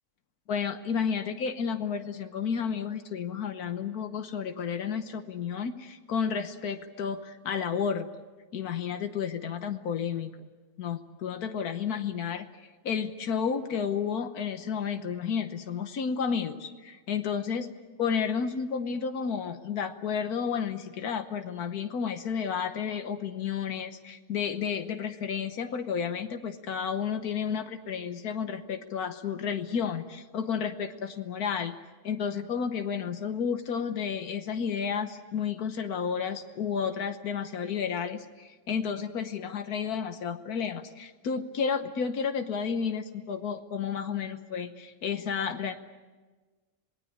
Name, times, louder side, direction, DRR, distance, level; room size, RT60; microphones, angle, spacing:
voice 1, 0.5-8.1 8.5-10.5 10.8-12.5 12.8-17.7 18.0-31.8 32.0-45.8, left 6 dB, 85° left, 8 dB, 1.6 m, -31 dB
26.5 x 19.5 x 8.6 m, 1.3 s
omnidirectional pair, 1.6 m